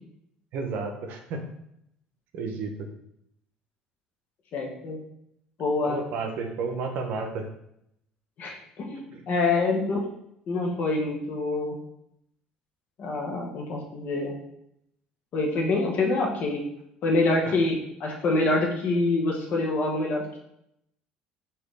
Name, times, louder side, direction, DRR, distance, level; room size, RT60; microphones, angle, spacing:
voice 1, 0.5-1.4 2.3-2.9 5.8-7.5 9.1-9.2 17.5-17.6, right 4 dB, 65° right, 5 dB, 0.6 m, -32 dB
voice 2, 4.5-5.0 5.6-6.0 8.4-10.0 10.5-11.8 13.0-14.3 15.3-16.6 17.0-20.4, left 2 dB, 55° left, -1 dB, 1.0 m, -26 dB
4.0 x 2.8 x 3.2 m, 0.77 s
hypercardioid pair, 70°, 3 cm